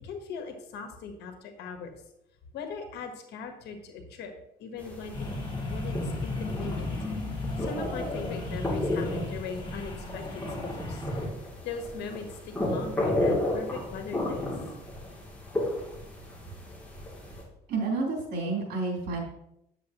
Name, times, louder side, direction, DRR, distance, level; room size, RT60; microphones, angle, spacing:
voice 1, 0.0-1.9 2.5-4.3 4.6-5.1 5.7-6.9 7.3-11.1 11.6-14.5, left 5 dB, 80° left, 5 dB, 1.3 m, -39 dB
sound 1, 4.8-17.4, left 1 dB, 5° left, 2.8 m, -33 dB
sound 2, 5.1-11.2, left 2 dB, 30° left, 2.9 m, -35 dB
voice 2, 17.7-19.2, right 3 dB, 70° right, -2 dB, 3.4 m, -30 dB
9.5 x 7.0 x 3.0 m, 0.81 s
cardioid pair, 110°, 17 cm